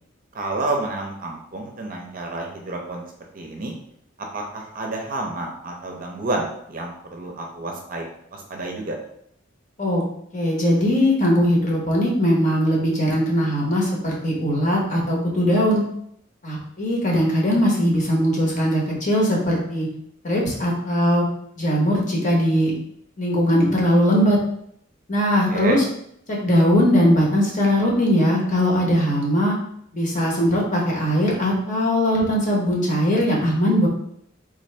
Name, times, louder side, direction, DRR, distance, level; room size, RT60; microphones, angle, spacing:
voice 1, 0.3-3.0 3.3-3.7 4.2-9.0 25.5-25.8, right 2 dB, 40° right, 1 dB, 0.5 m, -30 dB
voice 2, 10.3-15.8 16.4-19.9 20.2-21.2 21.6-22.7 23.2-24.4 25.1-25.8 26.3-29.6 29.9-33.9, equal, 35° left, -2 dB, 0.9 m, -20 dB
3.6 x 2.6 x 3.2 m, 0.71 s
head